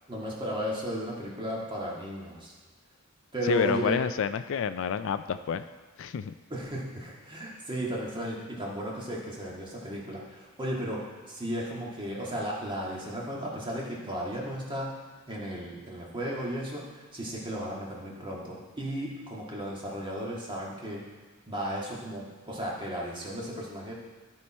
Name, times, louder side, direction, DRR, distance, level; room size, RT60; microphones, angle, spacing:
voice 1, 0.1-2.5 3.3-4.0 6.5-11.0 11.3-15.0 15.3-21.0 21.5-23.9, equal, 25° right, -4 dB, 1.8 m, -35 dB
voice 2, 3.5-5.6 6.0-6.3, left 7 dB, 65° left, 11 dB, 0.3 m, -28 dB
13.0 x 4.5 x 4.3 m, 1.4 s
head